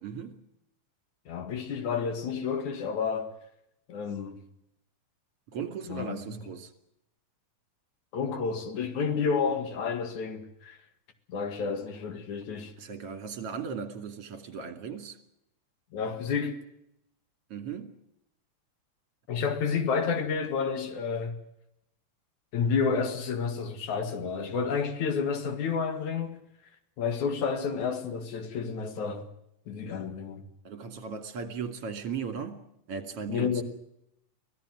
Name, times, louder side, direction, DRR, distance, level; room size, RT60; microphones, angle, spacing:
voice 1, 0.0-0.4 5.5-6.7 12.8-15.2 17.5-18.0 19.5-19.6 30.6-33.6, right 6 dB, 50° right, 3.4 m, -37 dB
voice 2, 1.3-3.3 3.9-4.4 5.9-6.2 8.1-10.8 11.3-12.7 15.9-16.6 19.3-21.4 22.5-26.4 27.0-29.3 29.7-30.4 33.3-33.6, left 5 dB, 70° left, 3.4 m, -30 dB
24.5 x 17.5 x 7.7 m
omnidirectional pair, 3.5 m